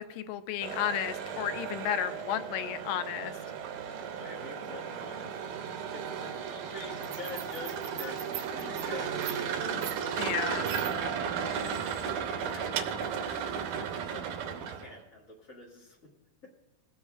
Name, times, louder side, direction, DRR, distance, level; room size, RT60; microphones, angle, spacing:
voice 1, 0.0-3.4 10.2-10.7, left 10 dB, 80° left, 11 dB, 2.1 m, -33 dB
sound 1, 0.6-14.9, right 7 dB, 75° right, 2.2 m, -35 dB
voice 2, 4.1-5.3 5.9-9.6 10.5-10.8 11.5-12.9 13.3-16.0, left 2 dB, 40° left, -5 dB, 1.1 m, -46 dB
22.0 x 7.9 x 2.4 m, 1.1 s
omnidirectional pair, 4.1 m